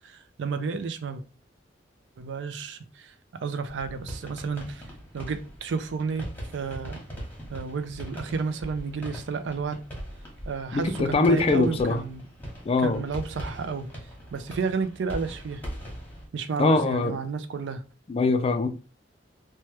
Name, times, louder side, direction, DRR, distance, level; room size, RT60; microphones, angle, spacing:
voice 1, 0.0-1.2 2.2-4.8 5.1-6.3 6.5-7.0 7.5-9.8 10.5-12.2 12.8-13.9 14.3-15.6 16.3-17.8, right 5 dB, 70° right, 0.4 m, -31 dB
sound 1, 3.7-16.3, equal, 10° left, 1.0 m, -40 dB
voice 2, 10.7-12.0 12.6-13.0 16.6-17.1 18.1-18.7, left 3 dB, 30° left, 0.3 m, -23 dB
3.1 x 2.2 x 2.8 m
head